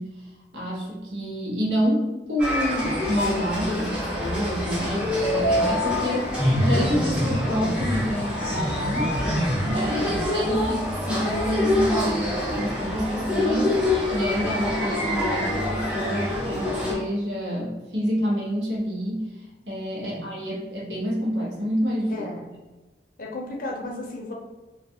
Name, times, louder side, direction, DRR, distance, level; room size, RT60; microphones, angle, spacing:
voice 1, 0.0-9.2 9.6-19.3 19.6-22.2, equal, 90° right, -5 dB, 0.9 m, -28 dB
sound 1, 2.4-16.9, left 1 dB, 5° right, 0.5 m, -25 dB
voice 2, 4.8-5.1 9.9-10.3 20.1-20.3 22.1-22.5 23.2-24.3, left 1 dB, 50° left, 0 dB, 0.5 m, -35 dB
2.3 x 2.3 x 2.7 m, 1.2 s
head